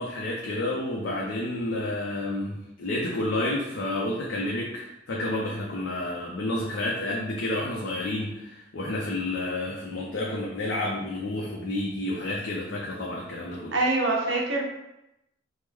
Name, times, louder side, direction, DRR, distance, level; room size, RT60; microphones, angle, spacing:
voice 1, 0.0-13.8, left 1 dB, 70° left, -4 dB, 0.5 m, -30 dB
voice 2, 13.7-14.7, right 2 dB, 75° right, -1 dB, 0.7 m, -24 dB
3.1 x 2.1 x 3.4 m, 0.87 s
head